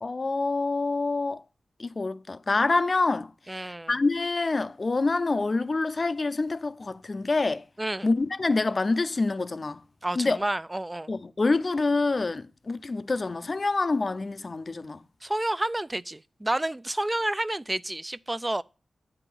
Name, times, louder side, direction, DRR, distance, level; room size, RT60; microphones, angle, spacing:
voice 1, 0.0-1.4 1.8-7.6 8.0-9.8 10.2-10.4 11.1-15.0, left 3 dB, 45° left, 0.5 m, -26 dB
voice 2, 3.5-3.9 7.8-8.1 10.0-11.1 15.2-18.6, right 1 dB, 20° right, 0.4 m, -30 dB
8.9 x 3.7 x 6.0 m
cardioid pair, 45°, 0 cm